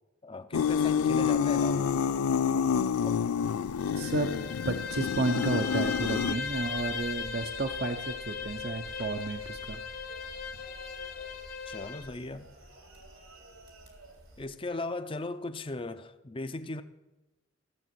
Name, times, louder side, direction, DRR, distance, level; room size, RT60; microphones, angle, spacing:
voice 1, 0.2-2.0 3.0-3.2 11.7-12.5 14.4-16.8, left 2 dB, 25° left, 0.5 m, -37 dB
sound 1, 0.5-6.3, left 7 dB, 80° left, 0.3 m, -28 dB
Bowed string instrument, 3.8-12.1, left 6 dB, 45° left, 1.0 m, -38 dB
voice 2, 4.0-4.3 4.7-9.8, right 3 dB, 50° right, 0.7 m, -32 dB
sound 2, 5.7-14.5, equal, 85° right, 3.3 m, -50 dB
15.5 x 7.3 x 6.1 m
head